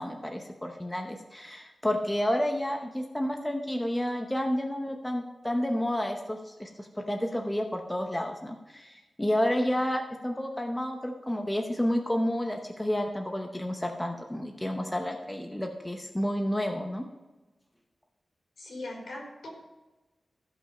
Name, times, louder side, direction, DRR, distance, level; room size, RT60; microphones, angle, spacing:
voice 1, 0.0-17.1, left 1 dB, 10° left, 3 dB, 0.8 m, -30 dB
voice 2, 18.6-19.5, left 2 dB, 75° left, -1 dB, 4.2 m, -40 dB
15.0 x 5.4 x 6.0 m, 1.1 s
wide cardioid pair, 180°, 0 cm